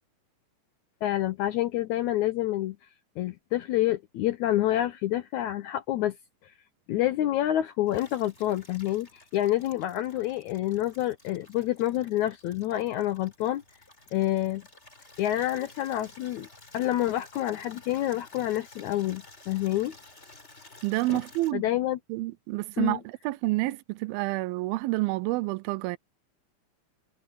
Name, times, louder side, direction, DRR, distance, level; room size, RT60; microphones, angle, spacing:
voice 1, 1.0-2.8 3.2-6.2 6.9-13.6 14.1-14.6 15.2-16.5 16.7-20.0 21.1-21.2 21.5-22.0 22.8-23.0, left 13 dB, 75° left, 1.7 m, -28 dB
Water tap faucet / Liquid, 7.9-21.5, left 2 dB, 20° left, 4.1 m, -53 dB
voice 2, 20.8-21.6 22.1-26.0, right 20 dB, 85° right, 2.5 m, -29 dB
omnidirectional pair, 4.2 m